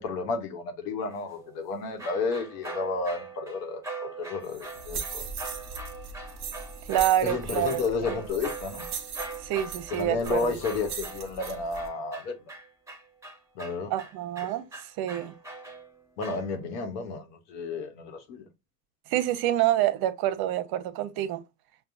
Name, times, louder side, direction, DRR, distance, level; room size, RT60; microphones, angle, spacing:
voice 1, 0.0-3.8 4.2-5.2 7.2-8.9 9.9-12.4 13.5-13.9 16.2-18.5, left 4 dB, 75° left, 1.1 m, -31 dB
sound 1, 1.1-16.9, right 3 dB, 5° right, 1.1 m, -42 dB
sound 2, 4.4-11.9, right 6 dB, 35° right, 1.0 m, -39 dB
voice 2, 6.9-7.8 9.4-10.5 13.9-14.6 15.0-15.3 19.1-21.4, right 13 dB, 50° right, 0.7 m, -26 dB
5.5 x 2.3 x 2.5 m
hypercardioid pair, 75°, 48 cm